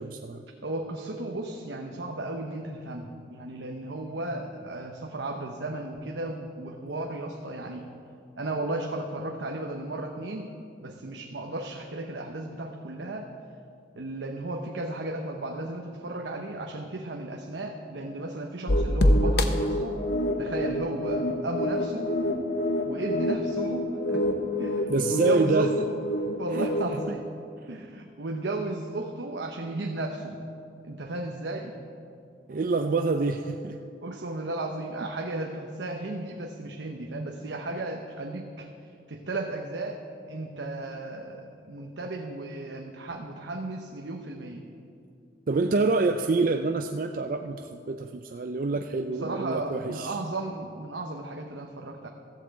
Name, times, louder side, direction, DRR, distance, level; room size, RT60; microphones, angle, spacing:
voice 1, 0.0-0.4 24.9-25.7 26.5-26.7 32.5-33.8 45.5-50.1, right 3 dB, 50° right, 6 dB, 0.4 m, -26 dB
voice 2, 0.6-7.9 8.4-10.5 10.8-13.3 13.9-20.0 20.4-22.2 22.9-24.2 24.5-26.0 26.4-27.3 27.7-30.4 30.8-31.8 34.0-38.7 39.1-44.6 48.7-52.1, right 2 dB, 90° right, 2 dB, 0.9 m, -34 dB
sound 1, 18.7-27.1, left 1 dB, 60° left, 0.9 m, -27 dB
14.0 x 8.1 x 7.7 m, 2.6 s
head